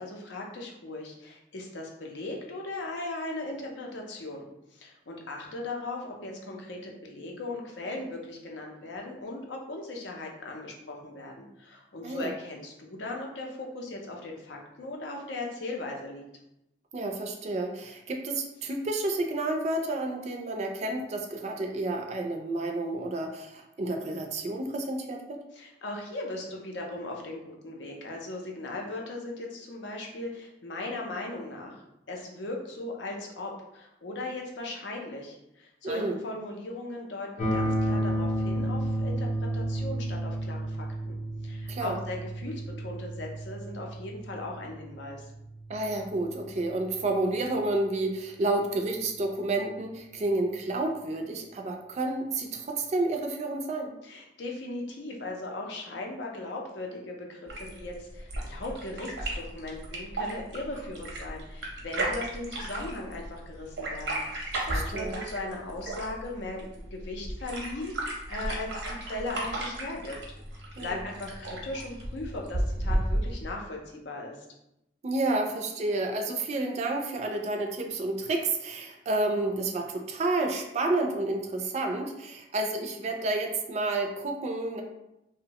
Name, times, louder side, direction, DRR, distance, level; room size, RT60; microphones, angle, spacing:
voice 1, 0.0-4.5 4.7-16.2 25.5-39.3 39.5-41.2 41.4-45.3 54.0-70.2 70.5-74.4, left 2 dB, 90° left, 0 dB, 0.5 m, -38 dB
voice 2, 16.9-25.4 35.8-36.2 41.7-42.0 45.7-53.9 64.7-65.2 70.8-71.0 75.0-84.8, right 2 dB, 40° right, 3 dB, 0.3 m, -30 dB
sound 1, 37.4-47.3, right 1 dB, 45° left, 0.6 m, -32 dB
sound 2, 57.5-73.5, right 1 dB, 85° right, 0.6 m, -34 dB
2.7 x 2.1 x 2.8 m, 0.86 s
head